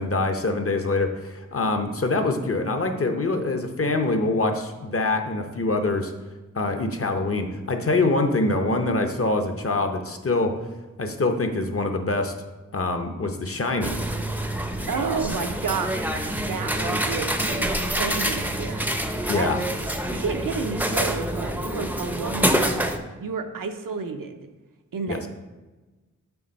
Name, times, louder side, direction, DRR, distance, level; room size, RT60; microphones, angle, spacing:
voice 1, 0.0-6.1 6.5-10.5 11.0-12.3 12.7-14.0 19.3-19.6 25.1-25.2, left 2 dB, 45° left, 6 dB, 0.7 m, -24 dB
sound 1, 13.8-23.0, right 1 dB, 5° right, 0.5 m, -26 dB
voice 2, 14.9-19.0 19.3-19.8 20.1-22.8 23.2-24.5 24.9-25.3, right 5 dB, 80° right, 6 dB, 0.6 m, -31 dB
7.0 x 3.4 x 5.2 m, 1.2 s
wide cardioid pair, 60°, 32 cm